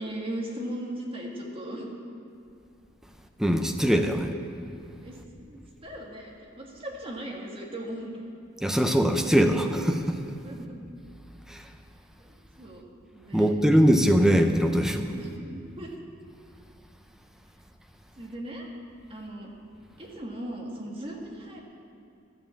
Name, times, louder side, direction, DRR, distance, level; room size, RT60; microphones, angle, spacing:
voice 1, 0.0-1.9 5.0-5.2 5.5-8.2 10.4-10.8 12.2-12.9 13.1-13.5 15.2-15.9 18.2-18.7 19.1-19.5 20.0-21.6, right 1 dB, 30° right, -1 dB, 1.7 m, -38 dB
voice 2, 3.4-4.3 8.6-10.2 11.5-11.6 13.3-15.1, equal, 5° right, 5 dB, 0.6 m, -22 dB
12.5 x 7.3 x 7.4 m, 2.6 s
head